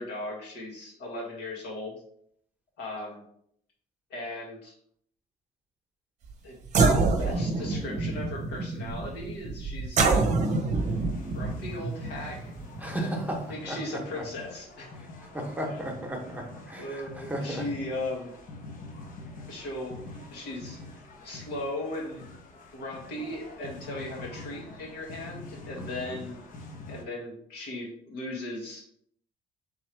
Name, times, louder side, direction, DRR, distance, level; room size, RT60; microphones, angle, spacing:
voice 1, 0.0-1.9 2.8-3.2 4.1-4.7 6.4-6.5 7.2-10.2 11.3-12.5 13.0-13.1 13.5-14.9 16.8-18.3 19.5-19.9 20.3-20.8 21.2-22.2 22.7-26.4 26.9-28.8, left 1 dB, 80° left, -1 dB, 1.6 m, -37 dB
sound 1, 6.3-6.4 6.6-13.5, right 3 dB, 45° right, 0.7 m, -27 dB
sound 2, 10.4-27.0, left 2 dB, 50° left, 0.9 m, -46 dB
voice 2, 12.8-14.2 15.0-15.1 15.3-17.7 25.7-26.3, right 1 dB, 10° right, 1 dB, 1.1 m, -35 dB
3.5 x 3.1 x 4.5 m, 0.68 s
cardioid pair, 110°, 17 cm